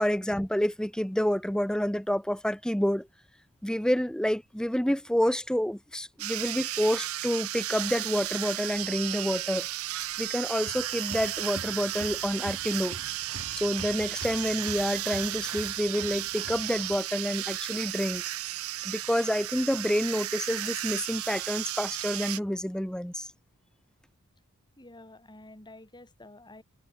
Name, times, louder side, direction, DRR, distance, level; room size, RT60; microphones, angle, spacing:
voice 1, 0.0-3.1 3.6-9.7 10.2-13.0 13.6-18.2 18.8-23.3, equal, 5° left, 1.0 m, -28 dB
sound 1, 6.2-22.4, right 14 dB, 70° right, 0.8 m, -34 dB
Applause, 10.4-17.0, right 3 dB, 85° right, 2.5 m, -44 dB
voice 2, 24.8-26.6, left 2 dB, 20° left, 6.7 m, -49 dB
head